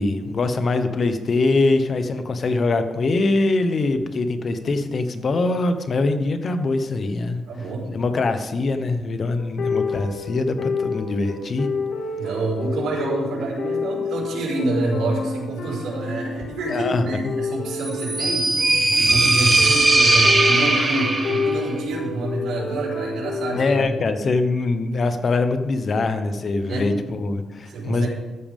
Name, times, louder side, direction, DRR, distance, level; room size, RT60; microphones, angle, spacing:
voice 1, 0.0-7.4 7.9-11.7 16.7-17.3 23.5-28.1, left 3 dB, 35° left, 8 dB, 1.0 m, -23 dB
voice 2, 7.5-7.9 12.2-18.5 18.9-23.9 26.7-26.9 27.7-28.1, right 2 dB, 75° right, -4 dB, 5.1 m, -27 dB
sound 1, 9.3-23.8, left 4 dB, 70° left, 2.1 m, -29 dB
sound 2, 17.8-21.6, right 2 dB, 20° right, 1.8 m, -18 dB
14.0 x 12.5 x 3.7 m, 1.2 s
cardioid pair, 165°, 0 cm